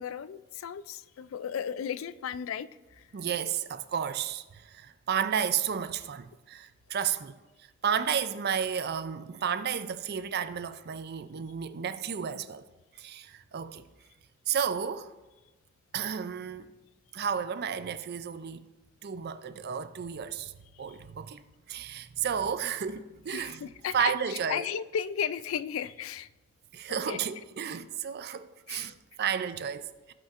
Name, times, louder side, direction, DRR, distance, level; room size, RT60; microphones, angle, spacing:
voice 1, 0.0-3.1 23.3-26.3 26.9-27.2 28.7-29.0, left 8 dB, 70° left, 0.3 m, -35 dB
voice 2, 3.1-12.7 13.0-13.9 14.5-15.1 15.9-16.7 17.1-18.7 19.0-24.7 26.7-30.1, right 8 dB, 50° right, 0.4 m, -32 dB
15.5 x 5.3 x 2.5 m
head